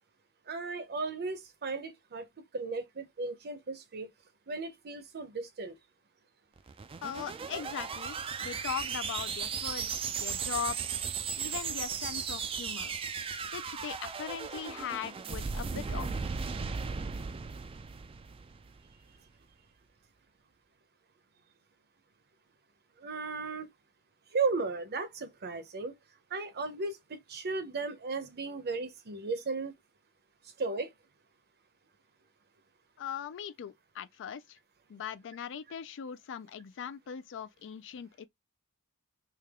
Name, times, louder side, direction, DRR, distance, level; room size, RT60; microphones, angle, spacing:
voice 1, 0.5-2.2 2.5-4.1 4.5-5.7 23.0-23.7 24.3-25.9 26.3-29.7 30.6-30.9, right 4 dB, 45° right, 0.7 m, -35 dB
sound 1, 6.6-18.9, right 6 dB, 25° right, 0.3 m, -36 dB
voice 2, 7.0-11.0 11.4-12.9 13.5-16.3 33.0-34.6 34.9-38.3, left 8 dB, 55° left, 0.4 m, -40 dB
3.3 x 2.8 x 3.5 m
head